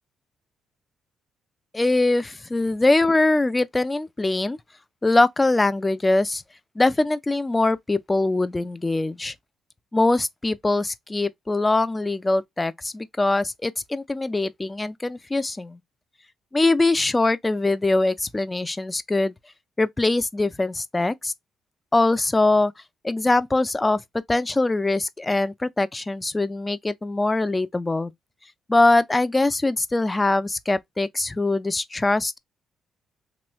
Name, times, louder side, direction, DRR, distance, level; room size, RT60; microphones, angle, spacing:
voice 1, 1.7-4.6 5.0-6.4 6.8-9.3 9.9-15.8 16.5-19.3 19.8-21.3 21.9-22.7 23.0-24.0 24.3-28.1 28.7-32.4, left 2 dB, 20° left, 0.3 m, -22 dB
3.0 x 2.2 x 3.0 m
cardioid pair, 90°, 0 cm